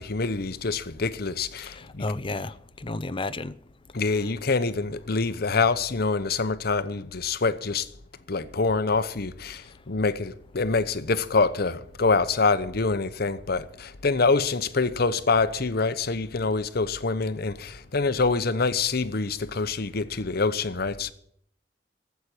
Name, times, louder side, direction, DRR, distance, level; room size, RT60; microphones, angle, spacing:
voice 1, 0.0-2.1 3.9-7.9 8.3-21.1, left 4 dB, 55° left, 0.9 m, -25 dB
voice 2, 1.8-3.5, left 2 dB, 30° left, 0.6 m, -32 dB
14.5 x 8.3 x 9.0 m
head